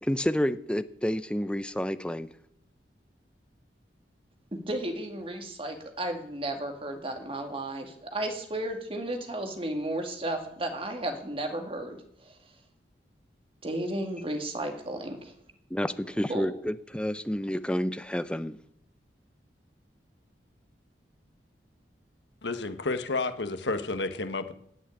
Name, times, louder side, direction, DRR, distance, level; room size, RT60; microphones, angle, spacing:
voice 1, 0.0-2.3 15.7-18.6, equal, 5° left, 0.6 m, -29 dB
voice 2, 4.7-12.3 13.6-15.3 16.3-16.5, right 1 dB, 30° right, 2.1 m, -33 dB
voice 3, 22.4-24.6, left 3 dB, 75° left, 1.2 m, -31 dB
16.5 x 6.2 x 9.7 m
head